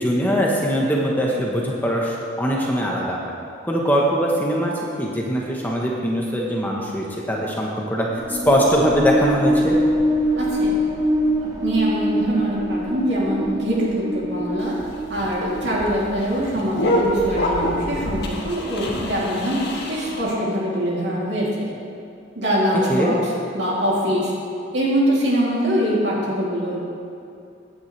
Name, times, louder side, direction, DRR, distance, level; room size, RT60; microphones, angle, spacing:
voice 1, 0.0-3.2 3.6-4.7 5.0-9.8 22.9-23.1, equal, 10° left, -3 dB, 1.0 m, -21 dB
sound 1, 8.1-15.8, equal, 20° right, 1.0 m, -23 dB
voice 2, 10.3-10.7 11.6-14.7 15.1-19.6 19.9-21.7 22.4-23.2 23.5-24.3 24.7-26.8, equal, 60° right, -6 dB, 2.9 m, -23 dB
sound 2, 14.6-20.2, equal, 55° left, 1.5 m, -26 dB
16.0 x 9.5 x 3.3 m, 2.6 s
head